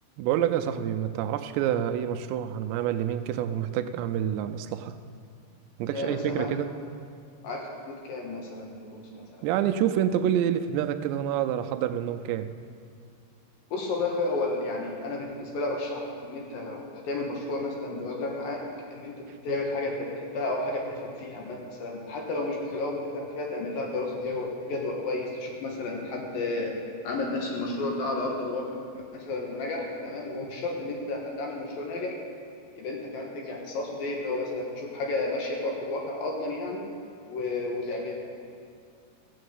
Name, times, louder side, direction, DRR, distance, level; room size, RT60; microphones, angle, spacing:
voice 1, 0.2-5.0 5.8-6.7 9.4-12.5, right 10 dB, 85° right, 9 dB, 2.8 m, -27 dB
voice 2, 5.9-6.5 7.4-9.4 13.7-18.6 18.9-26.8 27.0-32.2 32.8-36.9 37.3-38.1, left 2 dB, 65° left, 0 dB, 2.8 m, -32 dB
15.0 x 7.6 x 8.0 m, 2.3 s
omnidirectional pair, 5.0 m